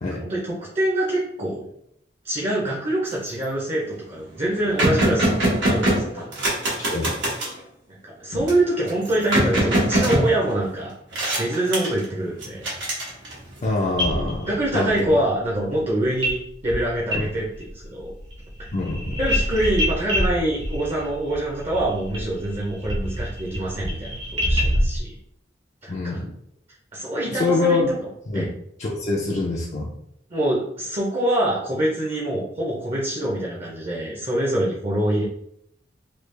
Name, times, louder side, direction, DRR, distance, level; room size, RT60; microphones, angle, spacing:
voice 1, 0.2-1.7 2.2-6.5 7.9-10.9 11.4-12.7 14.5-16.4 16.6-18.1 19.2-25.1 25.8-26.2 26.9-28.0 28.3-28.5 30.3-35.2, right 1 dB, 35° right, -4 dB, 0.7 m, -25 dB
sound 1, 3.1-3.4 3.9-4.0 4.2-7.6 8.5-10.8 11.1-12.0 12.4-13.6, right 1 dB, 80° right, 1.3 m, -23 dB
voice 2, 13.6-14.9 17.1-17.3 18.7-19.2 25.9-26.3 27.3-27.9 28.3-28.4 28.8-29.9, left 3 dB, 40° left, -4 dB, 0.4 m, -25 dB
sound 2, 14.0-14.9 16.2-16.4 16.6-17.7 18.0-25.0, equal, 65° right, 1.1 m, -26 dB
3.2 x 2.4 x 3.2 m, 0.73 s
head